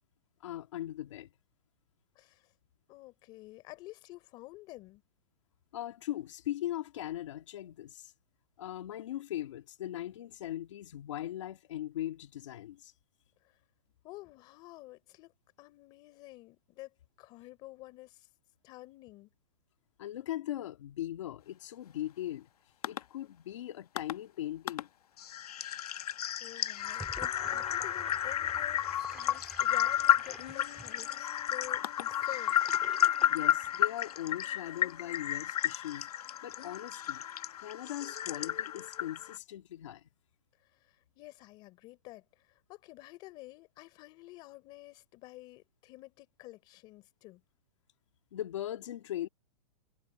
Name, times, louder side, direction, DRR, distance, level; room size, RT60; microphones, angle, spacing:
voice 1, 0.4-1.3 5.7-8.1 8.6-12.9 20.0-22.5 22.9-24.9 33.3-37.2 37.6-40.0 48.3-49.3, left 13 dB, 50° left, 2.0 m, -39 dB
voice 2, 2.2-2.5 2.9-5.0 14.0-15.3 15.6-18.3 18.6-19.3 26.0-32.6 40.8-47.4, left 19 dB, 20° left, 3.9 m, -50 dB
sound 1, 22.8-23.0 24.0-24.1 24.7-24.8 25.2-39.4, left 11 dB, 70° left, 1.1 m, -32 dB
Gurgling / Sink (filling or washing), 26.8-34.3, right 2 dB, 5° right, 4.1 m, -51 dB
hypercardioid pair, 180°, 20 cm